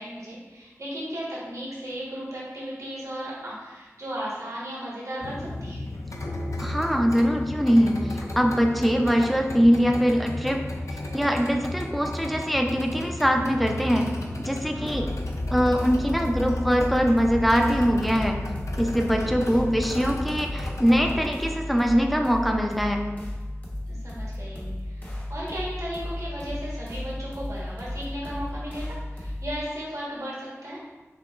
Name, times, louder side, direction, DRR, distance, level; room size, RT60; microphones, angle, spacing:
voice 1, 0.0-5.8 14.6-15.2 19.2-19.6 23.9-30.8, equal, 85° right, -6 dB, 1.2 m, -36 dB
sound 1, 5.2-21.3, left 1 dB, 75° left, 0.4 m, -33 dB
voice 2, 6.6-10.6 11.1-14.1 14.4-15.1 15.5-18.4 18.8-23.0, equal, ahead, 2 dB, 0.5 m, -22 dB
sound 2, 14.9-29.6, left 1 dB, 35° left, 1.0 m, -35 dB
5.8 x 2.9 x 2.4 m, 1.2 s
wide cardioid pair, 40°, 5 cm